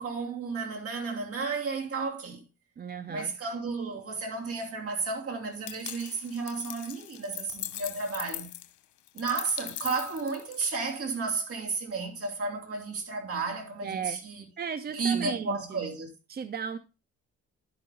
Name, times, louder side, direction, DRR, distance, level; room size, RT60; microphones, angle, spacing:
voice 1, 0.0-2.4 3.1-8.5 9.1-14.4 14.9-16.1, right 4 dB, 50° right, 2.8 m, -32 dB
voice 2, 2.8-3.3 13.8-14.2 14.6-15.8 16.3-16.8, right 7 dB, 30° right, 0.5 m, -35 dB
sound 1, 5.7-10.9, left 13 dB, 75° left, 0.9 m, -40 dB
11.5 x 5.7 x 3.7 m
cardioid pair, 90°, 30 cm